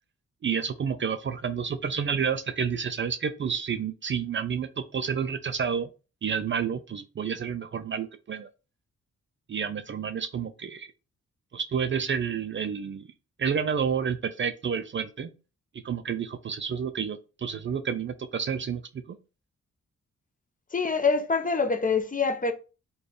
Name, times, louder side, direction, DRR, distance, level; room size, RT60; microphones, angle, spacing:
voice 1, 0.4-5.9 6.2-8.5 9.5-10.9 11.5-13.1 13.4-15.3 15.8-19.2, right 7 dB, 40° right, 0.4 m, -30 dB
voice 2, 20.7-22.5, left 4 dB, 30° left, 0.6 m, -25 dB
3.4 x 2.3 x 3.9 m
cardioid pair, 70°, 30 cm